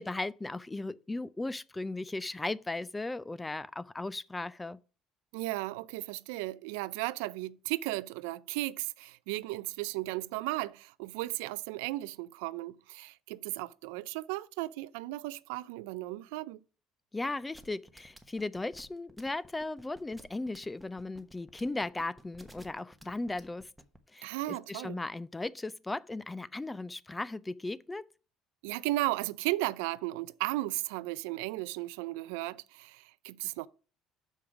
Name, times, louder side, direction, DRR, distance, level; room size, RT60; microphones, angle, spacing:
voice 1, 0.0-4.8 17.1-23.7 24.1-28.0, left 2 dB, 15° left, 0.4 m, -37 dB
voice 2, 5.3-16.6 24.2-25.0 28.6-33.7, right 19 dB, 90° right, 0.3 m, -35 dB
sound 1, 17.5-24.0, equal, 5° right, 1.1 m, -53 dB
6.4 x 5.0 x 5.8 m
supercardioid pair, 100°, 0 cm